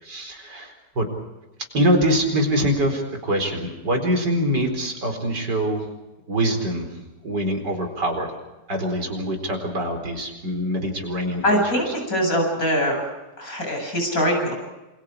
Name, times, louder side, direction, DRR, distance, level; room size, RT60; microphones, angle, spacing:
voice 1, 0.0-1.0 1.7-5.8 6.3-8.3 8.7-11.9, equal, 80° right, 4 dB, 5.0 m, -24 dB
voice 2, 11.4-13.0 13.4-14.5, equal, 55° left, 2 dB, 8.2 m, -22 dB
28.0 x 27.5 x 5.0 m, 1.1 s
omnidirectional pair, 1.8 m